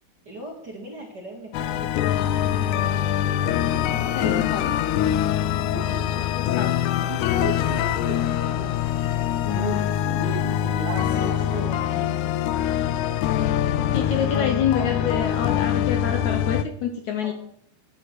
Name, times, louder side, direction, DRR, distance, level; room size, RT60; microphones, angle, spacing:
voice 1, 0.2-2.7 5.5-6.0 8.2-8.8 11.1-12.2 14.1-14.5 17.2-17.3, right 1 dB, 40° right, -1 dB, 1.8 m, -41 dB
sound 1, 1.5-16.6, left 11 dB, 85° left, 1.8 m, -24 dB
Male speech man speaking, 3.7-12.2, right 7 dB, 75° right, 2.6 m, -37 dB
voice 2, 3.8-4.7 6.1-6.7 11.5-11.6 13.8-17.3, left 7 dB, 70° left, 5 dB, 1.9 m, -27 dB
9.7 x 9.6 x 6.1 m, 0.71 s
omnidirectional pair, 4.1 m